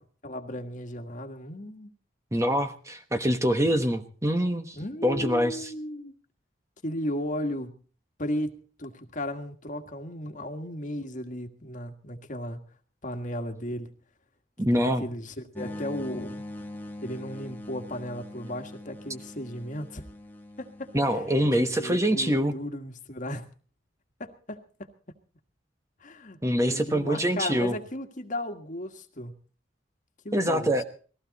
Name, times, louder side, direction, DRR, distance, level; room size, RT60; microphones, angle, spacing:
voice 1, 0.2-1.9 4.7-6.1 6.8-7.7 8.2-12.6 13.0-13.9 14.7-16.4 17.0-20.0 20.6-23.4 24.2-24.9 26.0-29.3 30.2-30.8, left 1 dB, 45° left, 6 dB, 1.7 m, -35 dB
voice 2, 2.3-4.8 5.0-5.7 14.6-15.1 20.9-22.5 26.4-27.8 30.3-30.8, equal, 15° right, 7 dB, 1.2 m, -25 dB
sound 1, 15.6-22.1, left 1 dB, 10° left, 1.4 m, -42 dB
19.5 x 15.5 x 4.1 m, 0.41 s
head